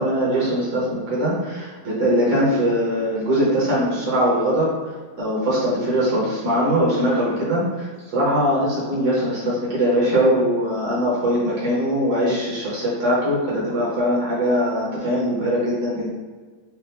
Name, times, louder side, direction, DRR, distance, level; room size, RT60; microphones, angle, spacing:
voice 1, 0.0-4.7 5.2-16.1, equal, 60° right, -7 dB, 2.0 m, -21 dB
5.8 x 2.5 x 3.5 m, 1.4 s
omnidirectional pair, 3.7 m